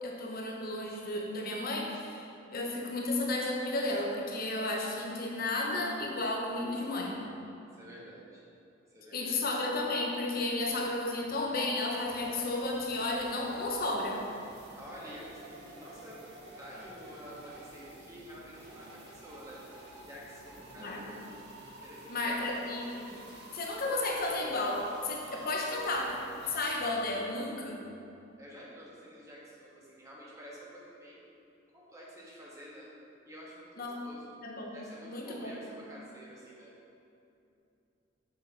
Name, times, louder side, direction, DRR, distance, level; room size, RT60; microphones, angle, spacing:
voice 1, 0.0-7.2 9.1-14.2 20.8-21.0 22.1-23.2 23.5-27.8 33.8-34.0 34.4-35.6, left 2 dB, 50° left, 0 dB, 0.8 m, -33 dB
voice 2, 7.6-8.5 8.9-9.4 14.8-16.3 16.6-19.6 20.0-21.3 21.8-22.6 25.4-25.9 28.4-31.2 31.7-32.9 33.2-34.3 34.7-36.7, equal, 15° right, -6 dB, 1.4 m, -49 dB
sound 1, 12.0-26.6, right 2 dB, 60° right, 1.6 m, -51 dB
6.7 x 5.6 x 4.1 m, 2.7 s
head